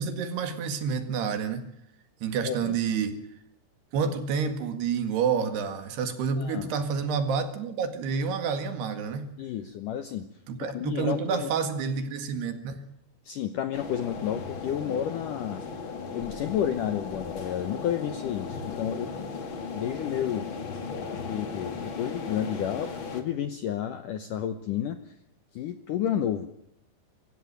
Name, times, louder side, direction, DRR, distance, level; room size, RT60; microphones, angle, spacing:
voice 1, 0.0-1.6 2.2-3.2 3.9-9.3 10.5-12.8, right 6 dB, 70° right, 9 dB, 3.9 m, -29 dB
voice 2, 2.4-2.8 6.4-6.7 9.4-10.3 10.6-11.5 13.2-15.6 16.1-19.1 19.7-20.5 21.1-25.1 25.5-26.5, left 10 dB, 75° left, 10 dB, 2.0 m, -31 dB
sound 1, 13.7-23.2, left 4 dB, 40° left, 1.9 m, -37 dB
24.5 x 15.5 x 9.0 m, 0.75 s
omnidirectional pair, 5.1 m